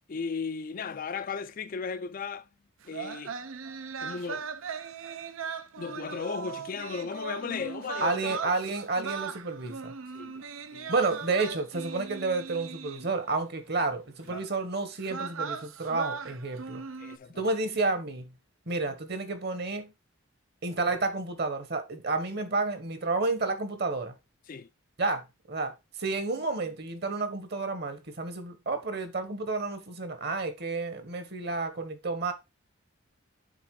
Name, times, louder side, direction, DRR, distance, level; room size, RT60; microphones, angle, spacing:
voice 1, 0.1-2.5 2.8-3.4 4.0-4.5 5.8-8.4 10.1-10.9 14.3-14.5 17.0-17.5 24.5-24.7, left 5 dB, 40° left, 0.4 m, -36 dB
sound 1, 2.8-13.3 14.3-14.5 15.0-17.2, right 5 dB, 75° right, 0.6 m, -39 dB
voice 2, 8.0-9.9 10.9-16.8 17.4-18.3 18.7-19.9 20.6-24.1 25.0-25.7 26.0-32.3, right 3 dB, 50° right, 1.2 m, -30 dB
8.1 x 3.6 x 4.7 m
head